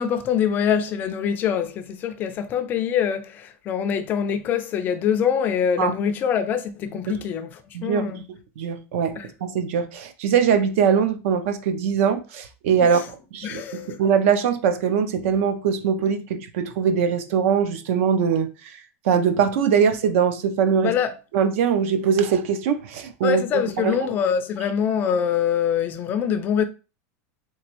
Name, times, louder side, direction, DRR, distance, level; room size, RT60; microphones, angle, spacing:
voice 1, 0.0-8.2 9.2-9.3 12.8-13.1 13.4-14.0 20.8-21.1 23.2-26.6, left 8 dB, 25° left, 0.3 m, -24 dB
voice 2, 7.7-8.1 8.6-9.1 9.4-18.5 19.0-20.9 21.3-24.0, right 7 dB, 65° right, 0.5 m, -22 dB
3.4 x 3.0 x 3.0 m
supercardioid pair, 170°, 8 cm